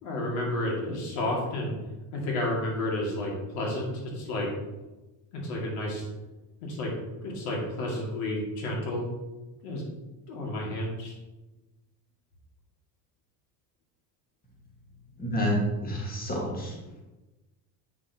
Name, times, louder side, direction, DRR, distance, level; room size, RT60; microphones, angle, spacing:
voice 1, 0.0-1.8 2.1-4.5 5.3-6.1 6.6-7.0 7.2-9.1 9.6-9.8 10.3-11.1, left 1 dB, 90° left, -2 dB, 2.4 m, -31 dB
voice 2, 15.2-16.8, equal, 20° left, -2 dB, 1.8 m, -28 dB
8.2 x 6.2 x 2.9 m, 1.1 s
cardioid pair, 135°, 42 cm